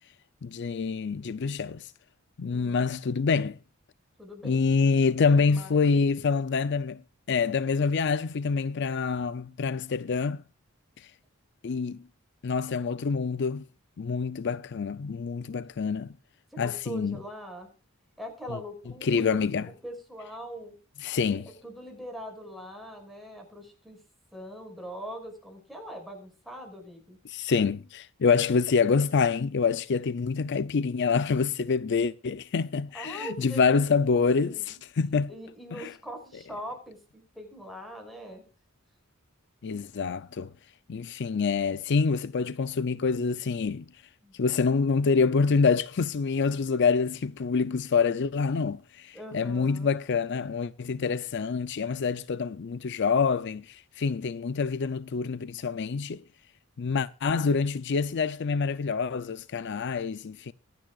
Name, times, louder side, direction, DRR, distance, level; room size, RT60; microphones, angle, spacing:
voice 1, 0.4-1.9 2.4-3.6 4.4-7.0 7.3-10.4 11.0-11.1 11.6-12.0 12.4-13.6 14.0-16.1 16.6-17.2 19.0-19.6 21.0-21.5 27.3-35.3 35.7-35.9 39.6-40.5 40.9-43.9 44.3-56.2 56.8-60.5, left 5 dB, 55° left, 0.5 m, -26 dB
voice 2, 2.5-2.9 4.2-4.6 5.2-5.8 16.5-17.7 18.2-20.7 21.3-24.0 24.3-27.2 32.9-34.8 35.3-38.4 44.2-44.3 49.1-49.9, equal, ahead, 5.8 m, -42 dB
24.5 x 9.1 x 2.4 m
head